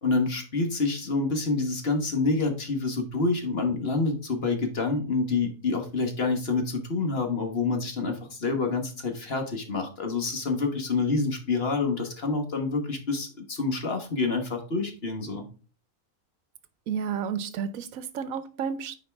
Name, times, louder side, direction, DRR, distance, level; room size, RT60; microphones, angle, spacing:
voice 1, 0.0-15.5, left 3 dB, 45° left, 1.5 m, -27 dB
voice 2, 16.9-19.0, right 7 dB, 75° right, 1.1 m, -31 dB
9.0 x 4.6 x 3.5 m
omnidirectional pair, 1.5 m